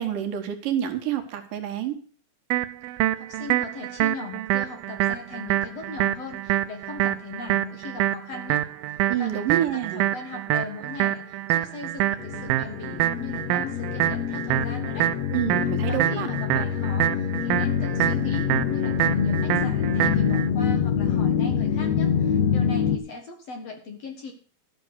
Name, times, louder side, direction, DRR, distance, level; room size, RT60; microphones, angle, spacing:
voice 1, 0.0-2.0 9.1-10.0 15.3-16.3, right 10 dB, 70° right, 6 dB, 2.9 m, -27 dB
sound 1, 2.5-20.5, right 14 dB, 85° right, 2.5 m, -26 dB
voice 2, 3.2-15.1 15.9-24.3, left 3 dB, 55° left, 4 dB, 2.2 m, -39 dB
sound 2, 12.2-23.0, left 7 dB, 70° left, 1.6 m, -25 dB
12.5 x 6.4 x 8.0 m, 0.43 s
omnidirectional pair, 4.1 m